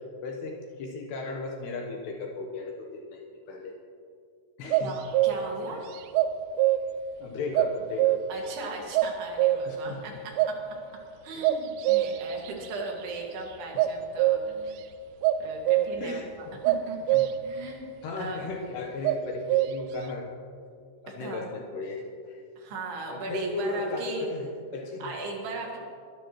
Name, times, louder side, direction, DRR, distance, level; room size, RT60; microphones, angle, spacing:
voice 1, 0.2-3.2 3.5-3.8 4.6-4.9 7.2-8.2 9.7-10.0 11.4-11.5 16.0-16.2 17.1-17.2 18.0-20.3 21.0-22.4 23.1-25.1, left 3 dB, 75° left, 1 dB, 2.6 m, -35 dB
sound 1, 4.7-5.6 6.1-7.1 7.5-8.6 8.9-9.9 10.4-10.5 11.4-12.5 13.8-14.7 15.2-16.2 16.6-17.6 19.0-20.0, right 13 dB, 85° right, 3.1 m, -24 dB
voice 2, 4.8-5.8 8.3-10.6 11.2-14.8 15.4-17.2 17.4-17.9 18.2-18.5 21.1-21.5 22.6-24.3 25.0-25.8, right 3 dB, 60° right, 0 dB, 3.5 m, -38 dB
22.5 x 12.0 x 3.0 m, 2.3 s
omnidirectional pair, 5.9 m